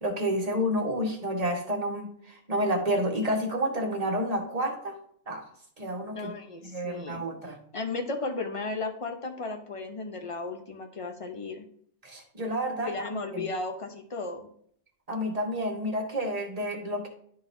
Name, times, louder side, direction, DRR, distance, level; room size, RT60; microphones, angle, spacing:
voice 1, 0.0-4.9 5.3-5.4 5.8-6.3 6.7-7.6 12.0-13.1 13.3-13.4 15.1-17.1, equal, 30° right, 1 dB, 1.4 m, -29 dB
voice 2, 6.1-7.2 7.7-11.7 12.8-14.5, left 3 dB, 30° left, 5 dB, 0.7 m, -35 dB
11.5 x 4.0 x 2.7 m, 0.62 s
omnidirectional pair, 1.3 m